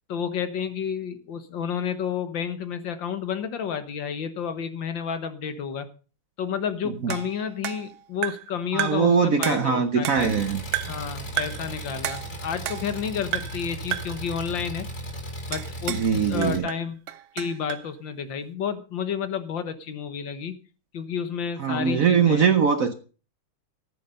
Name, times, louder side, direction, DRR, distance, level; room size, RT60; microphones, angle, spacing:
voice 1, 0.1-5.9 6.4-10.3 10.9-14.9 15.5-17.0 17.3-20.6 20.9-22.5, left 7 dB, 65° left, 1.9 m, -31 dB
sound 1, 7.1-8.5 8.8-9.1 9.4-10.4 10.7-11.1 11.4-11.7 12.0-13.0 13.3-13.7 13.9-14.2 15.5-16.1 16.4-17.9, right 13 dB, 85° right, 1.6 m, -32 dB
voice 2, 8.7-10.6 15.9-16.7 21.6-22.9, right 6 dB, 55° right, 1.0 m, -21 dB
Engine, 10.2-16.6, right 1 dB, 50° left, 2.9 m, -36 dB
14.5 x 9.3 x 5.3 m
omnidirectional pair, 2.3 m